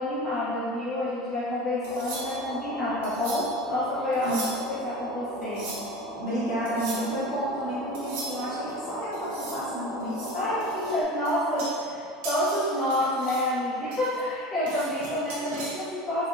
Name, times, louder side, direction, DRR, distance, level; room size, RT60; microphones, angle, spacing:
voice 1, 0.0-4.4 4.7-5.9 10.3-16.3, left 1 dB, 10° left, -12 dB, 0.5 m, -28 dB
sound 1, 1.8-11.0, equal, 80° left, 0.7 m, -37 dB
sound 2, 1.8-2.5 3.0-3.6 4.1-4.8 5.4-6.0 6.7-7.1 7.9-8.7 9.1-9.7 10.0-12.0 12.2-13.5 13.9-15.7, right 2 dB, 80° right, 0.7 m, -39 dB
voice 2, 6.1-10.6 14.6-14.8, right 1 dB, 40° left, -11 dB, 1.2 m, -31 dB
3.6 x 2.1 x 2.3 m, 2.2 s
cardioid pair, 170°, 0 cm